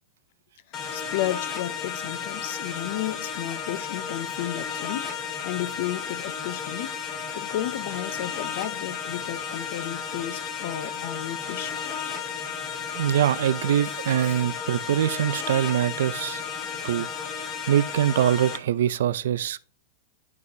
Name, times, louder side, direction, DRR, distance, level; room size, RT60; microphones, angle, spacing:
voice 1, 0.7-5.1 5.4-6.9 7.3-11.8, left 13 dB, 45° left, 0.5 m, -33 dB
sound 1, 0.7-18.6, left 6 dB, 25° left, 1.0 m, -33 dB
Insect, 6.1-6.2 7.2-9.7 10.9-11.0 11.7-12.3 12.6-13.1 13.8-14.5, left 5 dB, 75° left, 2.4 m, -54 dB
voice 2, 12.9-16.4 16.8-17.1 17.7-19.6, right 10 dB, 70° right, 0.5 m, -23 dB
10.5 x 4.7 x 2.8 m
supercardioid pair, 175°, 0 cm